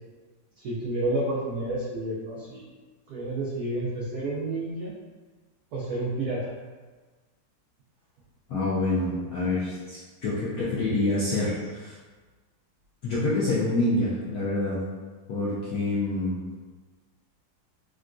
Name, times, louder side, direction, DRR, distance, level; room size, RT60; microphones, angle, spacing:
voice 1, 0.6-2.7 3.1-4.9 5.7-6.4 11.6-11.7, right 2 dB, 85° right, -6 dB, 0.8 m, -30 dB
voice 2, 8.5-11.9 13.0-14.8 15.3-16.3, left 2 dB, 75° left, -9 dB, 0.8 m, -27 dB
3.8 x 2.2 x 2.4 m, 1.3 s
omnidirectional pair, 2.2 m